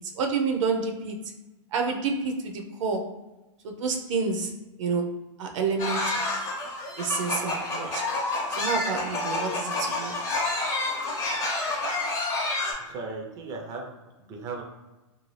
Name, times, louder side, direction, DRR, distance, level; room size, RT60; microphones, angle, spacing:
voice 1, 0.0-1.3 1.7-3.2 3.6-6.5 7.0-10.2, right 4 dB, 75° right, 3 dB, 0.6 m, -29 dB
sound 1, 5.8-12.7, left 2 dB, 20° left, 0.6 m, -29 dB
voice 2, 12.8-13.9 14.2-14.6, right 3 dB, 20° right, 1 dB, 0.4 m, -37 dB
2.6 x 2.4 x 3.1 m, 1.1 s
hypercardioid pair, 145°, 17 cm